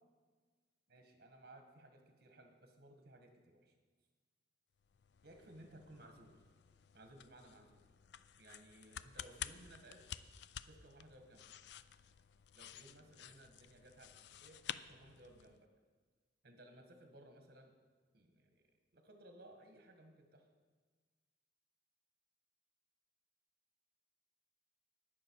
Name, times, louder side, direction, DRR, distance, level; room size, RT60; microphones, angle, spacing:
voice 1, 0.9-3.7 5.2-6.4 6.9-7.8 8.4-10.0 10.6-11.5 12.5-14.1 14.4-15.7 16.4-17.7 18.1-18.7 18.9-20.5, right 1 dB, 60° right, 4 dB, 1.5 m, -60 dB
sound 1, 4.8-15.6, left 10 dB, 65° left, 0.4 m, -52 dB
18.0 x 6.3 x 4.7 m, 1.4 s
head